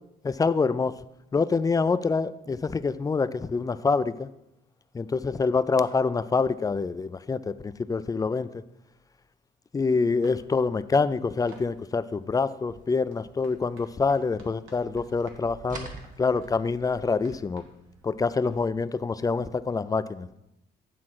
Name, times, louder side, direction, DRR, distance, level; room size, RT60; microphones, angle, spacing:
voice 1, 0.2-0.9 1.3-4.3 4.9-8.5 9.7-15.9 16.2-17.6 18.0-20.3, left 4 dB, 20° left, 14 dB, 0.3 m, -26 dB
sound 1, 9.8-18.6, right 3 dB, 90° right, 1.5 m, -52 dB
sound 2, 12.6-14.8 15.1-16.9, right 3 dB, 40° right, 1.4 m, -47 dB
9.5 x 3.7 x 6.0 m, 0.86 s
cardioid pair, 90°, 20 cm